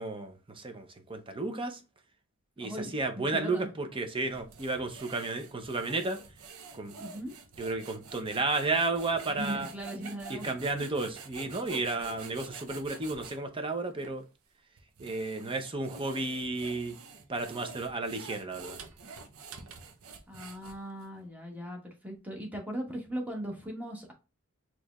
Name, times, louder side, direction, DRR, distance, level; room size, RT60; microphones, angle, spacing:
voice 1, 0.0-1.8 2.6-6.2 6.7-6.9 7.6-9.7 10.3-14.2 15.0-17.0 17.3-18.8, right 3 dB, 25° right, 0.7 m, -33 dB
voice 2, 2.6-3.7 7.0-7.3 9.3-10.5 20.3-24.1, right 1 dB, 5° right, 1.2 m, -39 dB
sound 1, 4.2-13.4 14.0-14.1 14.8-21.0, right 4 dB, 80° right, 0.7 m, -47 dB
4.6 x 3.0 x 2.4 m
head